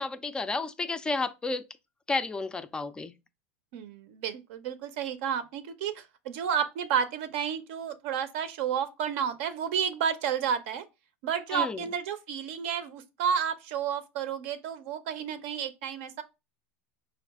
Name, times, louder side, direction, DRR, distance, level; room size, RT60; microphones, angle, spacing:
voice 1, 0.0-1.6 2.1-3.1 11.5-11.8, left 3 dB, 10° left, 0.3 m, -31 dB
voice 2, 3.7-10.8 11.2-16.2, right 8 dB, 65° right, 0.5 m, -31 dB
4.6 x 2.4 x 3.5 m
supercardioid pair, 130°, 7 cm